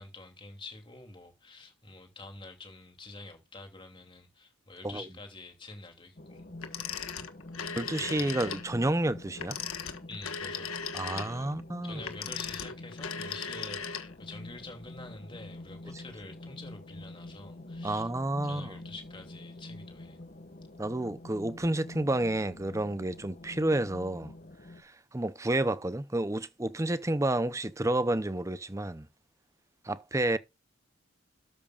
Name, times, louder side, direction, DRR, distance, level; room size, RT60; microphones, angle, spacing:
voice 1, 0.0-6.5 7.6-8.3 10.1-10.7 11.2-11.5 11.8-18.1 18.4-20.2, left 3 dB, 25° left, 2.8 m, -47 dB
sound 1, 6.2-24.8, left 2 dB, 40° left, 1.3 m, -46 dB
Telephone, 6.6-8.7 9.3-14.4, left 6 dB, 80° left, 1.5 m, -38 dB
voice 2, 7.8-9.6 10.9-12.0 17.8-18.7 20.8-24.3 24.8-29.1 29.8-30.4, right 1 dB, 15° right, 0.6 m, -30 dB
12.5 x 8.7 x 2.4 m
head